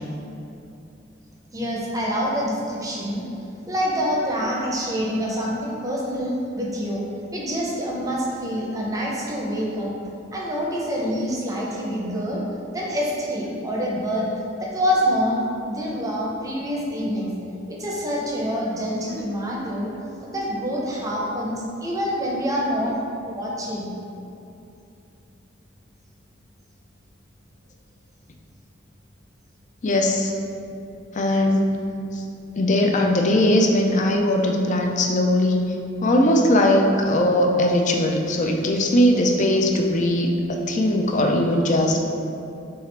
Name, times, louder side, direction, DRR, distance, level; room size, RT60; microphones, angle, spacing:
voice 1, 1.5-3.2 3.7-7.0 7.3-9.9 10.3-12.4 12.7-14.3 14.6-17.3 17.7-19.9 20.2-23.0 23.2-23.9, equal, 20° right, -4 dB, 0.7 m, -26 dB
voice 2, 29.8-30.3 31.1-31.8 32.1-32.2 32.6-35.6 36.0-42.0, left 1 dB, 40° left, 1 dB, 0.4 m, -20 dB
6.0 x 2.4 x 3.3 m, 2.7 s
head